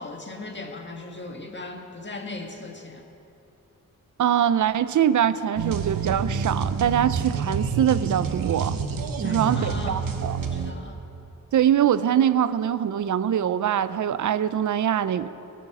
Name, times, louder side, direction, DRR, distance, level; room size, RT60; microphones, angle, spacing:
voice 1, 0.0-3.0 9.2-10.0 10.4-11.0, left 3 dB, 35° left, 2 dB, 1.7 m, -38 dB
voice 2, 4.2-8.8 9.2-10.4 11.5-15.3, right 9 dB, 60° right, 15 dB, 0.5 m, -23 dB
sound 1, 5.6-10.7, right 6 dB, 80° right, 0.9 m, -28 dB
18.0 x 8.1 x 6.0 m, 2.9 s
wide cardioid pair, 85°, 34 cm